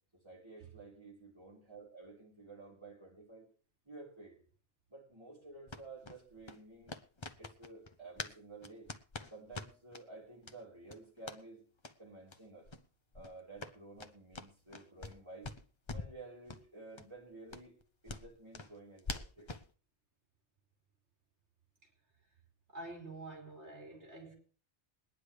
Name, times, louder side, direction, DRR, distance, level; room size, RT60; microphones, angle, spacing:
voice 1, 0.1-3.5 3.9-4.4 4.9-7.0 7.4-8.9 9.3-11.7 12.0-12.7 13.1-15.5 15.9-17.7 18.0-19.5, right 3 dB, 25° right, 3.9 m, -52 dB
sound 1, 5.7-8.4 8.6-10.0 10.4-10.6 10.9-11.4 11.8-12.0 12.3-12.4 12.6-12.8 13.1-15.2 15.4-16.2 16.5-16.6 17.0-17.1 17.5-19.7, left 3 dB, 30° left, 0.7 m, -45 dB
voice 2, 22.7-24.4, right 2 dB, 75° right, 3.6 m, -47 dB
22.5 x 10.0 x 3.2 m
omnidirectional pair, 1.2 m